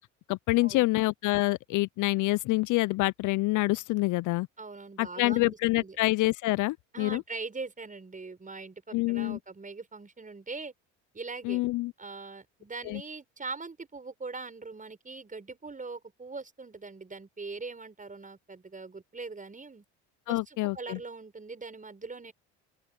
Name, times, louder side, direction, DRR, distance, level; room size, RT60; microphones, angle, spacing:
voice 1, 0.3-4.5 5.0-7.2 8.9-9.4 11.4-11.9 12.9-13.0 20.3-21.0, left 20 dB, 55° left, 0.6 m, -27 dB
voice 2, 4.6-6.0 6.9-10.7 11.1-11.6 12.0-19.8 20.3-22.3, right 4 dB, 20° right, 6.6 m, -41 dB
open air
hypercardioid pair, 70°, 35 cm